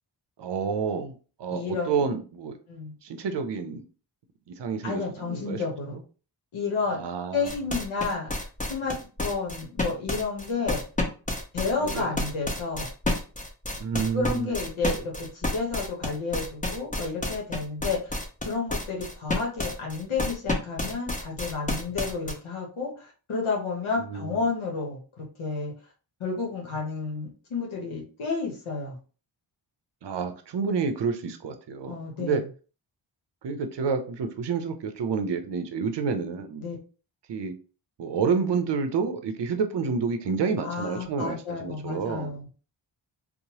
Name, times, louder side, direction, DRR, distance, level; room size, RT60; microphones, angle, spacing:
voice 1, 0.4-1.1 1.4-2.6 3.0-3.8 4.5-5.6 5.9-6.0 6.9-7.5 11.8-12.1 13.8-14.5 24.0-24.4 30.0-32.4 33.4-36.6 37.3-37.6 38.0-42.3, right 5 dB, 60° right, 7 dB, 0.6 m, -29 dB
voice 2, 1.5-2.1 2.7-2.9 4.8-6.0 6.5-7.0 7.3-10.8 11.5-12.9 14.1-18.2 18.5-25.7 26.2-29.0 31.9-32.4 36.6-36.8 40.6-42.5, left 4 dB, 80° left, -1 dB, 0.9 m, -31 dB
sound 1, 7.5-22.3, left 2 dB, 15° left, 0.8 m, -30 dB
3.0 x 2.1 x 2.8 m, 0.36 s
cardioid pair, 40°, 48 cm